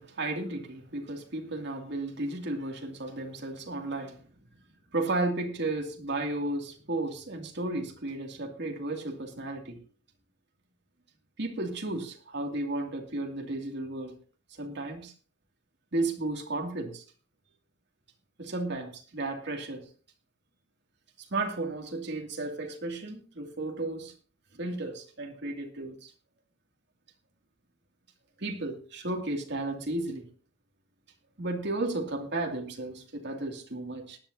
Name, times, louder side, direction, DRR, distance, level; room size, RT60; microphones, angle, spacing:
voice 1, 0.0-4.2 4.9-9.8 11.4-14.1 14.5-15.1 15.9-17.0 18.4-19.8 21.3-24.1 24.6-26.1 28.4-30.3 31.4-34.2, right 2 dB, 65° right, 2.5 m, -33 dB
19.5 x 10.5 x 2.8 m
head